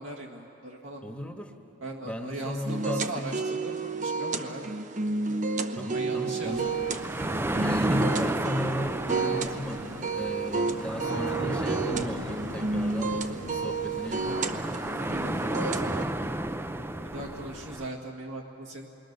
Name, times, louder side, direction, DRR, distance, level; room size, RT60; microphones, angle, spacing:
voice 1, 0.0-1.0 1.8-4.8 5.1-5.5 5.9-7.0 11.0-11.5 15.0-16.1 17.1-18.9, right 1 dB, 80° right, -1 dB, 1.8 m, -39 dB
voice 2, 1.0-1.5 2.0-3.5 5.7-6.7 7.6-14.5, equal, 5° left, 3 dB, 1.4 m, -35 dB
sound 1, 2.6-16.0, right 3 dB, 40° right, 0.8 m, -31 dB
sound 2, 6.4-17.9, right 1 dB, 10° right, 0.5 m, -33 dB
Thunder / Rain, 10.4-17.7, left 2 dB, 75° left, 1.0 m, -46 dB
28.5 x 22.0 x 6.7 m, 2.8 s
head